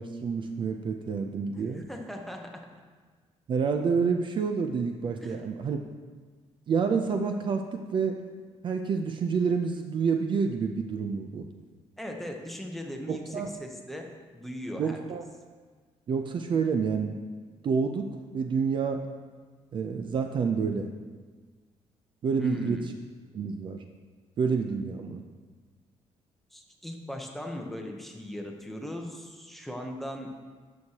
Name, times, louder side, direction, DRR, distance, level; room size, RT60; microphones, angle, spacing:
voice 1, 0.0-1.8 3.5-5.8 6.7-8.2 8.6-11.5 13.1-13.5 14.8-15.2 16.1-17.2 17.6-19.0 19.7-21.0 22.2-22.8 23.3-23.8 24.4-25.2, right 5 dB, 45° right, 5 dB, 0.5 m, -28 dB
voice 2, 1.7-2.7 5.2-5.4 12.0-15.0 22.4-22.9 26.5-30.3, equal, ahead, 2 dB, 0.8 m, -38 dB
11.0 x 6.4 x 2.9 m, 1.5 s
cardioid pair, 150°, 12 cm